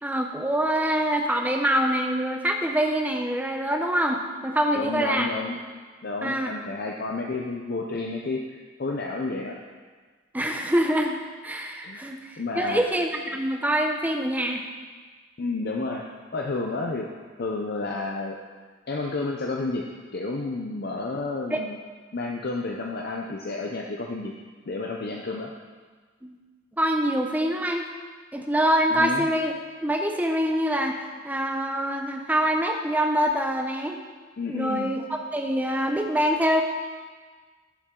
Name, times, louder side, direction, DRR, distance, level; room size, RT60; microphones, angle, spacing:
voice 1, 0.0-5.3 6.2-6.5 10.3-11.2 11.4-14.6 21.5-21.6 26.2-26.4 26.8-27.8 28.3-29.5 29.8-31.0 31.2-34.0 34.5-36.6, equal, 10° right, 3 dB, 0.6 m, -25 dB
voice 2, 4.7-5.6 6.0-9.6 11.8-12.0 12.4-12.8 15.4-16.0 16.3-17.1 17.4-18.4 18.9-19.9 20.1-21.8 22.1-24.3 24.7-25.5 28.9-29.3 34.4-35.0, left 3 dB, 50° left, 0 dB, 0.6 m, -31 dB
12.0 x 7.1 x 3.8 m, 1.5 s
head